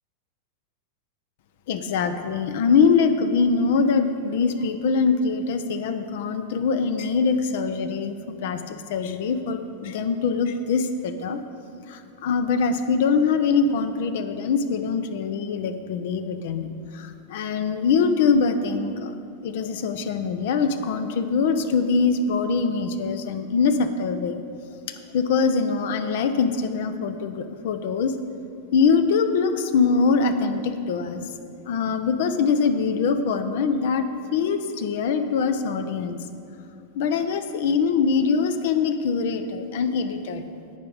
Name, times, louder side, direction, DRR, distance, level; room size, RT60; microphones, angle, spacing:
voice 1, 1.7-8.2 8.4-11.4 11.9-16.7 16.9-19.1 19.4-24.4 25.1-28.1 28.7-31.3 31.7-34.1 34.3-36.2 37.0-40.4, left 5 dB, 55° left, 9 dB, 0.7 m, -23 dB
17.0 x 5.9 x 5.1 m, 2.6 s
figure-of-eight pair, 90°, 0 cm